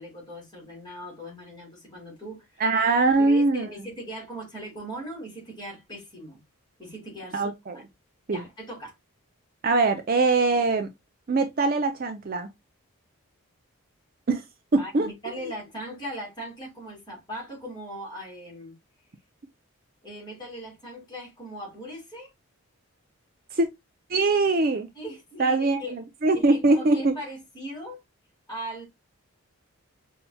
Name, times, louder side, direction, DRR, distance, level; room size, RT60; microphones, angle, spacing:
voice 1, 0.0-2.7 3.2-6.4 6.8-7.4 7.7-7.8 8.3-8.9 14.8-18.7 20.0-22.3 24.9-25.9 26.3-28.0 28.5-28.9, equal, 20° left, 2.5 m, -39 dB
voice 2, 2.6-3.7 7.3-7.8 8.3-8.4 9.6-10.9 11.3-12.5 14.3-14.4 14.7-15.1 23.5-23.7 24.1-24.9 25.4-27.1, right 3 dB, 40° right, 0.5 m, -22 dB
5.6 x 2.8 x 2.2 m
head